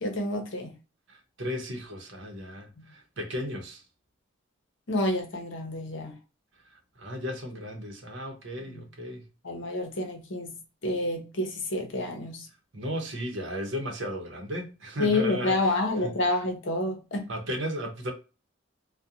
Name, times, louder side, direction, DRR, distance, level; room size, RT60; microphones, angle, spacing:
voice 1, 0.0-0.7 2.8-2.9 4.9-6.1 8.7-8.8 9.4-10.6 10.8-12.5 15.0-17.3, left 2 dB, 65° left, 0.8 m, -29 dB
voice 2, 1.1-3.8 7.0-9.3 12.7-15.7 16.0-16.2 17.3-18.1, equal, 65° right, 0.8 m, -35 dB
2.4 x 2.2 x 2.7 m
head